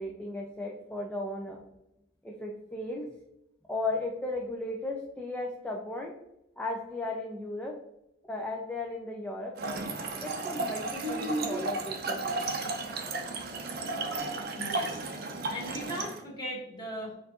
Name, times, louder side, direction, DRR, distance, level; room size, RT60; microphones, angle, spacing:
voice 1, 0.0-1.6 2.2-3.0 3.7-6.2 6.6-7.8 8.2-9.5 10.2-12.4, left 2 dB, 5° left, -1 dB, 0.3 m, -35 dB
Trickle dribble / Fill (with liquid), 9.6-16.2, right 2 dB, 55° right, 0.5 m, -33 dB
voice 2, 14.5-15.0 15.5-17.1, equal, 25° left, -4 dB, 1.3 m, -38 dB
4.3 x 2.5 x 2.7 m, 0.85 s
head